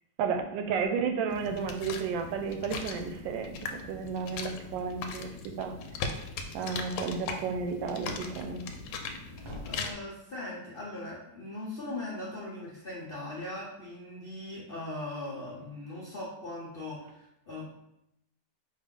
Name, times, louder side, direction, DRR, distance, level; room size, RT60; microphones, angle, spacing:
voice 1, 0.2-5.3 5.6-5.8 6.5-8.6, right 6 dB, 90° right, 6 dB, 1.3 m, -32 dB
sound 1, 1.3-9.9, left 4 dB, 75° left, 1.2 m, -39 dB
sound 2, 9.4-10.5, equal, 55° right, 1.0 m, -47 dB
voice 2, 9.6-17.7, left 2 dB, 60° left, -6 dB, 0.6 m, -40 dB
4.5 x 2.7 x 3.6 m, 0.84 s
omnidirectional pair, 2.0 m